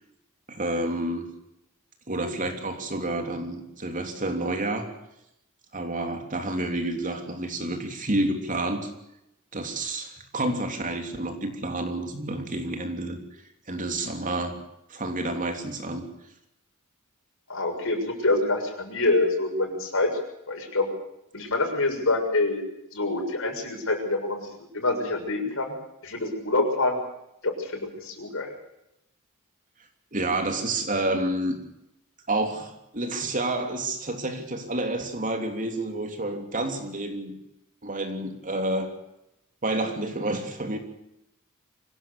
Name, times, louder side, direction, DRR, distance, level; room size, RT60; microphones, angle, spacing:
voice 1, 0.5-1.3 2.1-4.9 5.7-8.9 9.5-13.2 13.7-14.6 14.9-16.1 30.1-31.6 32.3-37.4 37.8-38.9 39.6-40.8, right 2 dB, 35° right, 5 dB, 3.3 m, -29 dB
voice 2, 17.5-20.1 20.5-20.9 21.3-22.6 22.9-24.5 24.7-25.7 26.0-27.0 27.4-28.5, left 2 dB, 65° left, 3 dB, 6.9 m, -26 dB
25.0 x 17.5 x 6.8 m, 0.83 s
head